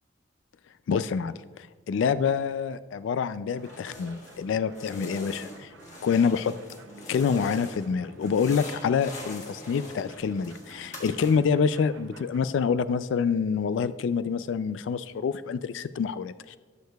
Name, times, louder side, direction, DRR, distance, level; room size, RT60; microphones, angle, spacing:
voice 1, 0.9-5.7 6.0-6.5 7.1-16.6, left 6 dB, 75° left, 13 dB, 0.3 m, -27 dB
sound 1, 3.5-12.4, right 3 dB, 80° right, 0.7 m, -51 dB
sound 2, 3.6-4.4 4.7-7.9 8.2-11.6, left 2 dB, 40° left, 1.4 m, -43 dB
18.0 x 6.4 x 2.3 m, 1.5 s
head